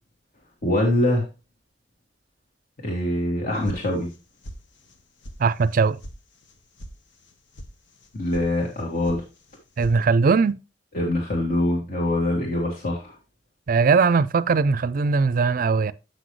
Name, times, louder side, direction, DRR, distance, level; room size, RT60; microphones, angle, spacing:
voice 1, 0.6-1.3 2.8-4.1 8.1-9.2 10.9-13.2, left 1 dB, 50° left, 1.9 m, -24 dB
sound 1, 3.7-4.2 4.4-5.0 5.2-5.4 5.7-6.2 6.4-6.9 7.2-7.7 8.0-8.5 8.7-9.2 9.5-10.0, equal, 85° left, 1.2 m, -40 dB
voice 2, 5.4-6.0 9.8-10.6 13.7-15.9, right 4 dB, 50° right, 0.4 m, -20 dB
8.1 x 6.2 x 3.1 m
head